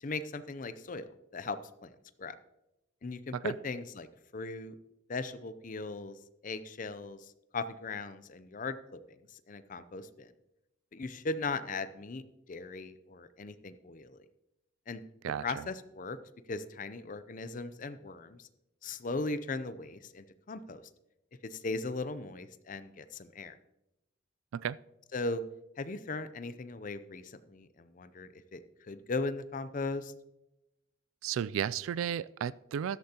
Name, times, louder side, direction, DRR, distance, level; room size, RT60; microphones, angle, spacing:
voice 1, 0.0-1.9 2.2-2.3 3.0-4.8 5.1-6.2 6.4-8.8 9.3-10.3 10.9-12.2 12.5-14.3 14.9-15.0 15.4-16.2 16.5-18.5 18.8-20.8 21.4-23.6 25.1-25.4 25.8-30.1, left 3 dB, 40° left, 12 dB, 0.5 m, -38 dB
voice 2, 31.2-33.0, right 8 dB, 85° right, 20 dB, 0.3 m, -33 dB
13.5 x 11.5 x 2.9 m, 0.91 s
head